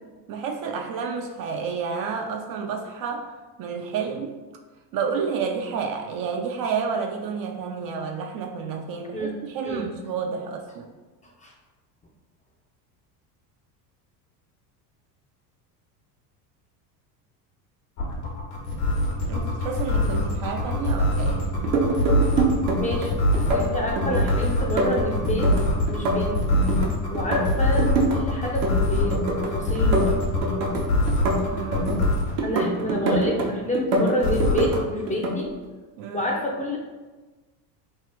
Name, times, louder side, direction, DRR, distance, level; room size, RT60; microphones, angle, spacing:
voice 1, 0.3-4.3 4.9-10.9 19.3-21.5 31.5-32.1 36.0-36.3, right 6 dB, 45° right, 3 dB, 0.5 m, -30 dB
sound 1, 18.0-32.4 34.2-34.8, left 2 dB, 85° left, 1.3 m, -23 dB
sound 2, 21.5-23.1 23.3-24.3 24.6-26.9 27.1-28.2 28.4-29.5 29.7-32.1 32.4-33.5 33.7-34.8 35.1-35.4, right 2 dB, 75° right, 1.0 m, -25 dB
voice 2, 22.8-25.5 25.9-26.5 27.1-30.2 32.4-35.5 36.1-36.8, equal, 15° left, -1 dB, 0.5 m, -28 dB
3.3 x 2.4 x 4.4 m, 1.2 s
hypercardioid pair, 90°, 50 cm